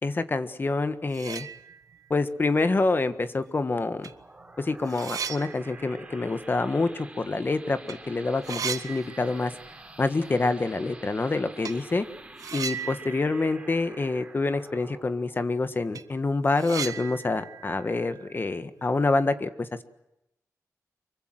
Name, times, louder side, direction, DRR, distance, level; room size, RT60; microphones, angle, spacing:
voice 1, 0.0-1.5 2.1-4.1 4.6-9.5 10.0-12.1 12.5-19.8, left 3 dB, 35° left, 11 dB, 1.5 m, -27 dB
sound 1, 0.7-0.8 1.1-2.1 2.5-2.6 3.5-3.6 4.0-7.5 7.7-8.0 8.2-9.8 10.1-10.2 11.6-11.9 12.4-14.5 14.8-14.9 15.3-15.4 15.7-19.0, right 7 dB, 90° right, 1.3 m, -38 dB
sound 2, 3.8-16.9, right 2 dB, 20° right, 4.1 m, -48 dB
25.5 x 23.5 x 7.7 m, 0.86 s
wide cardioid pair, 100°, 6 cm